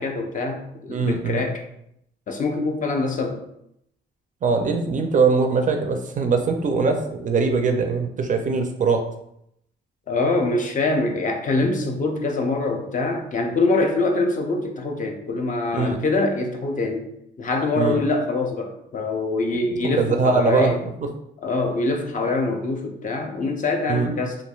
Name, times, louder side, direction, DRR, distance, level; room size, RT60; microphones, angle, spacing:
voice 1, 0.0-1.6 2.3-3.4 10.1-17.1 17.4-20.8 21.4-24.4, left 3 dB, 40° left, 3 dB, 0.5 m, -24 dB
voice 2, 0.9-1.4 4.4-9.0 15.7-16.0 17.8-18.0 19.8-20.8 21.0-21.1 23.9-24.1, right 4 dB, 40° right, 5 dB, 0.4 m, -21 dB
3.1 x 2.4 x 2.3 m, 0.76 s
cardioid pair, 90°, 20 cm